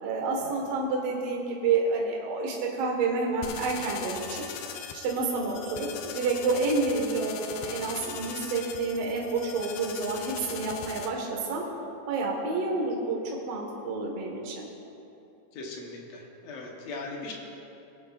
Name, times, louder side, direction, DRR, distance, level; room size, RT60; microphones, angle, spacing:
voice 1, 0.0-4.4 4.9-11.6 12.1-13.2 13.4-14.6, right 3 dB, 55° right, -2 dB, 2.1 m, -29 dB
sound 1, 3.4-11.1, left 8 dB, 80° left, 2.5 m, -40 dB
voice 2, 15.6-17.3, left 3 dB, 65° left, -1 dB, 1.8 m, -39 dB
20.0 x 9.4 x 2.5 m, 2.8 s
omnidirectional pair, 4.5 m